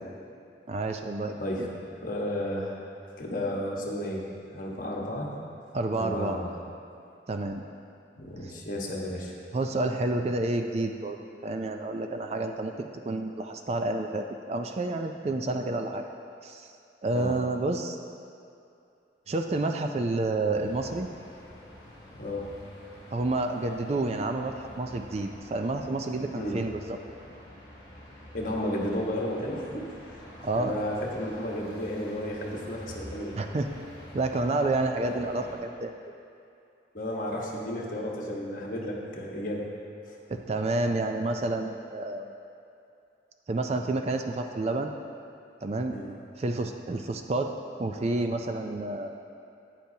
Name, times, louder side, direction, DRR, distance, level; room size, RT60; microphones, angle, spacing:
voice 1, 0.7-1.7 5.7-6.4 7.3-7.6 8.4-8.5 9.5-11.2 11.4-12.7 13.0-16.0 16.4-16.7 17.0-18.0 19.3-21.1 23.1-27.0 30.4-30.8 33.4-33.7 34.1-35.9 40.3-42.3 43.5-44.9 45.6-46.0 46.4-47.5 47.8-49.1, right 2 dB, 35° right, 5 dB, 0.4 m, -29 dB
voice 2, 2.0-2.8 3.2-4.3 4.5-5.3 6.0-6.5 8.2-9.3 17.1-17.3 22.1-22.5 26.4-26.6 28.3-29.8 30.1-30.2 30.5-33.4 36.9-39.6 40.1-40.2 45.9-46.1, left 1 dB, 45° left, -2 dB, 1.3 m, -33 dB
sound 1, 20.5-35.6, equal, 25° left, 2.3 m, -47 dB
11.5 x 9.2 x 2.8 m, 2.5 s
head